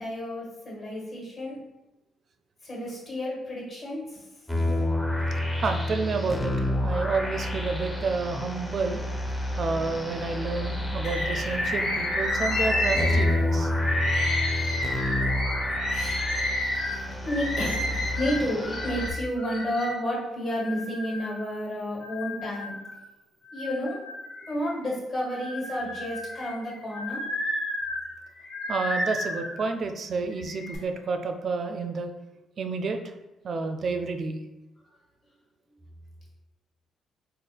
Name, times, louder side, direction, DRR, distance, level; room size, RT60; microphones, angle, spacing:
voice 1, 0.0-1.6 2.6-4.2 15.9-16.2 17.1-22.8 23.5-24.0 24.5-27.2, equal, 45° left, -4 dB, 1.4 m, -31 dB
sound 1, 4.5-19.1, left 1 dB, 10° left, 0.5 m, -29 dB
voice 2, 5.6-9.0 9.6-13.8 28.7-32.1 32.6-33.0 33.4-34.4, right 4 dB, 50° right, 6 dB, 0.4 m, -30 dB
Bird, 11.0-20.0 20.5-21.5 22.0-23.0 23.5-24.8 25.3-29.6 30.3-30.8, left 1 dB, 75° left, 0.9 m, -31 dB
3.4 x 2.1 x 4.1 m, 0.98 s
cardioid pair, 90°, 0 cm